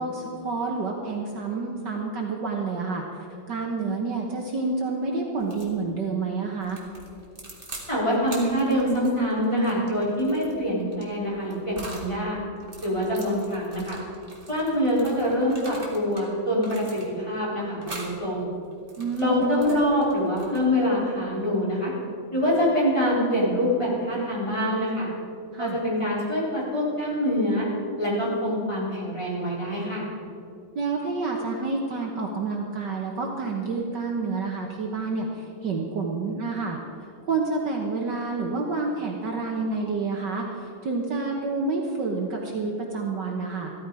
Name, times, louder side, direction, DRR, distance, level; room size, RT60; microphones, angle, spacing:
voice 1, 0.0-3.0 3.5-6.8 19.0-19.5 25.5-25.8 30.8-36.8 37.3-43.7, right 3 dB, 60° right, 0 dB, 1.7 m, -29 dB
sound 1, 5.4-5.7 6.6-7.9 8.2-12.1 12.6-16.3 16.6-17.3 17.8-18.2 18.7-20.8, right 2 dB, 25° right, 2.3 m, -43 dB
voice 2, 7.9-12.4 12.8-14.0 14.5-18.5 19.2-21.9 22.3-25.1 25.6-27.7 28.0-30.1, equal, 15° left, -7 dB, 4.3 m, -25 dB
14.5 x 14.0 x 4.9 m, 2.6 s
omnidirectional pair, 2.3 m